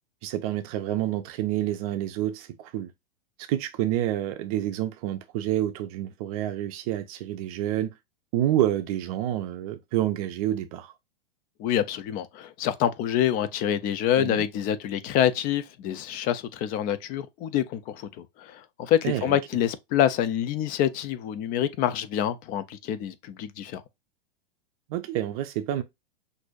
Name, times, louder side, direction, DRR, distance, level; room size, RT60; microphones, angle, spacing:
voice 1, 0.2-2.9 3.4-7.9 8.3-10.9 14.2-14.4 19.0-19.4 24.9-25.8, right 12 dB, 40° right, 0.6 m, -28 dB
voice 2, 11.6-23.8, left 10 dB, 30° left, 0.5 m, -26 dB
6.0 x 2.7 x 2.5 m
figure-of-eight pair, 105°, 30 cm